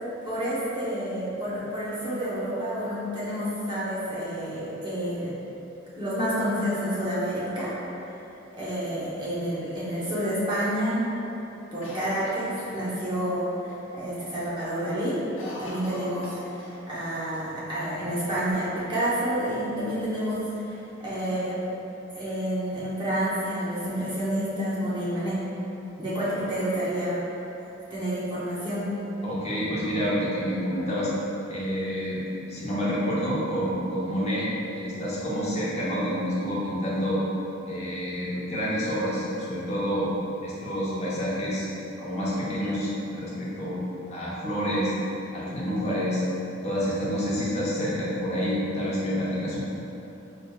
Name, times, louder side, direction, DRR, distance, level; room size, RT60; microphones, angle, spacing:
voice 1, 0.2-5.3 6.0-7.7 8.6-11.1 11.7-15.2 15.6-20.6 21.0-21.6 22.1-25.4 26.0-27.2 27.9-28.9, equal, 25° right, -10 dB, 0.9 m, -29 dB
Cough, 11.8-13.3 13.7-13.8 14.1-14.5 14.8-17.1 17.3-17.4 18.2-19.0, left 1 dB, 80° left, 0.8 m, -41 dB
voice 2, 29.2-31.1 31.5-32.2 32.5-34.5 34.7-37.2 37.7-40.1 40.4-41.7 42.0-43.8 44.1-44.9 45.3-46.2 46.6-49.6, equal, 35° left, -8 dB, 0.9 m, -28 dB
4.8 x 3.3 x 2.3 m, 3.0 s
head